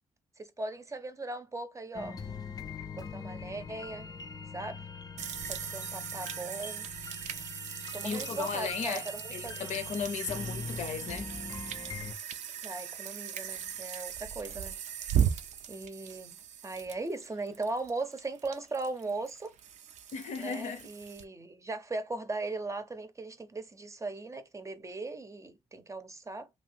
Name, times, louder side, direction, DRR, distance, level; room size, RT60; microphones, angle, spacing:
voice 1, 0.4-2.2 3.0-4.1 4.5-4.8 5.5-6.9 7.9-9.7 12.6-14.8 15.7-16.4 16.6-19.5 20.4-26.5, right 3 dB, 25° right, 0.6 m, -38 dB
sound 1, 1.9-12.1, left 5 dB, 30° left, 0.4 m, -43 dB
sound 2, 5.2-21.2, right 9 dB, 80° right, 0.4 m, -37 dB
voice 2, 8.0-11.3 20.1-20.9, left 6 dB, 75° left, 0.6 m, -36 dB
2.6 x 2.6 x 3.3 m
cardioid pair, 75°, 12 cm